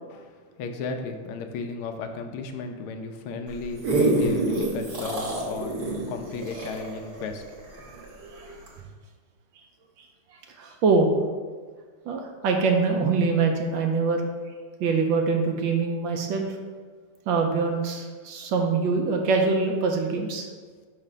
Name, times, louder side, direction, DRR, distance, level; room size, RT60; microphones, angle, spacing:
voice 1, 0.1-7.6, left 4 dB, 90° left, 5 dB, 1.6 m, -35 dB
sound 1, 3.5-8.1 8.7-8.8, right 2 dB, 55° right, 1.6 m, -27 dB
voice 2, 7.8-8.5 10.6-11.1 12.1-14.2 14.8-16.6 17.3-20.5, right 4 dB, 70° right, 3 dB, 1.3 m, -24 dB
5.8 x 4.4 x 5.0 m, 1.5 s
omnidirectional pair, 2.3 m